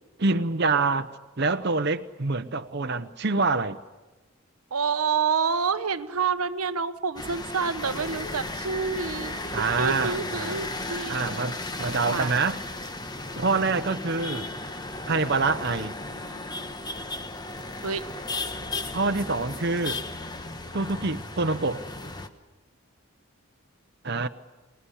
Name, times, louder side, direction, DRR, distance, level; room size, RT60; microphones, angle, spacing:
voice 1, 0.2-1.1 1.4-3.8 9.5-10.7 11.1-12.6 13.4-14.4 15.1-15.9 18.9-20.0 20.7-21.8 24.0-24.3, right 3 dB, 50° right, 0.9 m, -26 dB
voice 2, 4.7-9.4 9.8-11.2 12.1-12.4 17.8-18.1, right 5 dB, 85° right, 0.9 m, -28 dB
sound 1, 7.2-22.3, left 2 dB, 20° left, 1.2 m, -35 dB
26.5 x 19.5 x 10.0 m
head